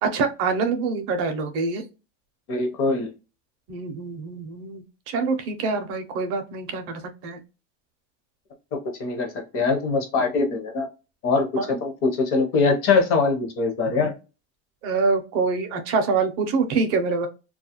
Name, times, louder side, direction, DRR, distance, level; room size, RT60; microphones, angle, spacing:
voice 1, 0.0-1.8 3.7-7.4 11.6-11.7 14.8-17.3, right 4 dB, 40° right, 6 dB, 0.5 m, -25 dB
voice 2, 2.5-3.1 9.0-10.9 11.2-14.1, left 4 dB, 35° left, 4 dB, 0.6 m, -22 dB
2.3 x 2.0 x 2.8 m, 0.30 s
supercardioid pair, 145°, 37 cm